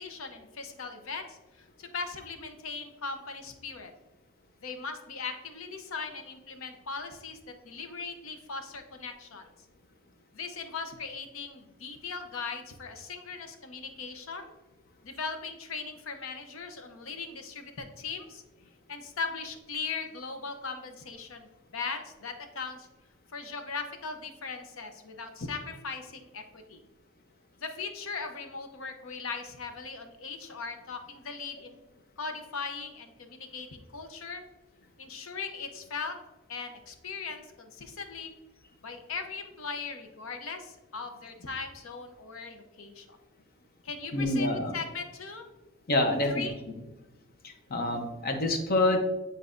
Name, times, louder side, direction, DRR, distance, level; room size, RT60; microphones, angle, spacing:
voice 1, 0.0-3.9 4.6-7.4 7.6-9.5 10.3-14.5 15.0-18.4 18.9-22.9 23.3-26.8 27.6-31.8 32.2-34.4 35.0-36.2 36.5-38.3 38.8-43.2 43.8-45.4 46.3-46.6, left 4 dB, 80° left, 6 dB, 0.7 m, -39 dB
voice 2, 44.1-44.8 45.9-46.5 47.4-49.0, left 2 dB, 50° left, 5 dB, 0.8 m, -27 dB
9.1 x 4.0 x 2.6 m, 1.1 s
head